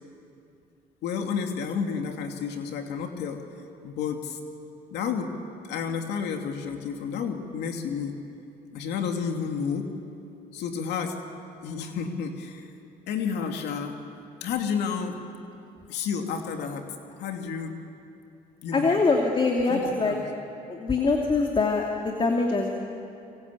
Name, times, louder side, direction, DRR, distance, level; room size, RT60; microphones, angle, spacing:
voice 1, 1.0-3.4 3.8-4.4 4.9-5.3 5.6-8.2 8.7-9.9 10.5-11.2 11.6-12.7 13.1-14.0 14.4-15.2 15.9-17.8 18.6-18.9 19.7-20.2, left 6 dB, 80° left, 4 dB, 2.6 m, -31 dB
voice 2, 18.7-20.1 20.7-22.7, left 3 dB, 30° left, 1 dB, 2.6 m, -23 dB
27.5 x 25.5 x 8.5 m, 2.7 s
cardioid pair, 110°, 17 cm